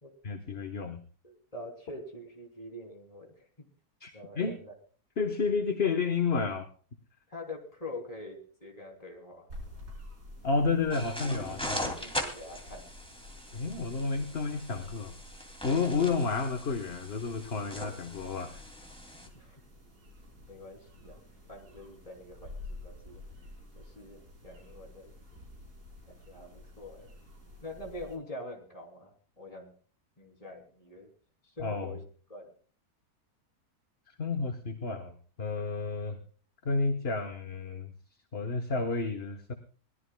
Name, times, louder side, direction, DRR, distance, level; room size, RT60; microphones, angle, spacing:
voice 1, 0.2-1.0 4.0-4.6 5.2-6.7 10.4-11.9 13.5-15.1 15.6-18.5 31.6-32.0 34.1-36.2 36.6-37.9 38.3-39.5, left 4 dB, 40° left, 7 dB, 1.3 m, -31 dB
voice 2, 1.2-3.7 4.1-4.7 7.3-9.5 11.8-12.8 19.3-19.6 20.5-21.2 21.5-23.2 23.7-25.1 26.1-27.1 27.6-29.7 30.2-31.1 31.6-32.0 32.3-32.5, left 1 dB, 20° left, 3 dB, 3.3 m, -45 dB
sound 1, 9.5-28.1, left 1 dB, 90° right, 5.2 m, -50 dB
sound 2, 10.9-19.3, equal, 5° left, 2.5 m, -40 dB
22.5 x 17.5 x 2.3 m, 0.42 s
omnidirectional pair, 1.6 m